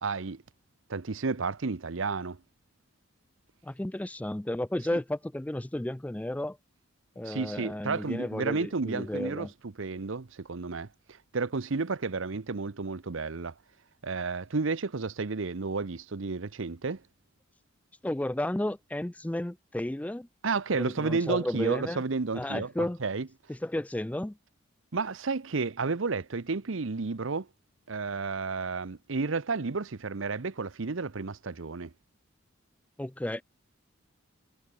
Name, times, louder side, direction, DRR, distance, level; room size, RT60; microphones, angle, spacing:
voice 1, 0.0-0.4 0.9-2.4 7.2-13.5 14.0-17.0 20.4-23.3 24.9-27.5 27.9-31.9, right 4 dB, 75° right, 0.8 m, -32 dB
voice 2, 3.6-6.6 7.2-9.5 18.0-20.3 20.8-22.0 22.3-23.0 23.5-24.4 33.0-33.4, left 1 dB, 5° left, 0.3 m, -33 dB
head